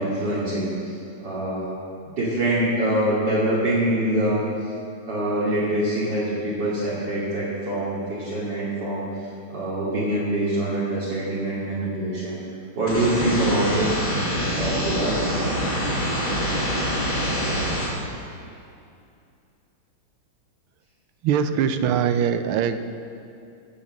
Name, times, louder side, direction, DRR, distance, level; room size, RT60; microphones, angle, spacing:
voice 1, 0.0-1.7 2.2-4.4 5.1-12.4 12.8-14.0 14.5-15.2, right 1 dB, 55° right, -9 dB, 2.9 m, -25 dB
sound 1, 12.9-17.9, equal, 85° left, 4.5 m, -25 dB
voice 2, 21.2-22.8, right 8 dB, 85° right, 10 dB, 1.6 m, -22 dB
15.5 x 7.1 x 7.5 m, 2.5 s
omnidirectional pair, 2.3 m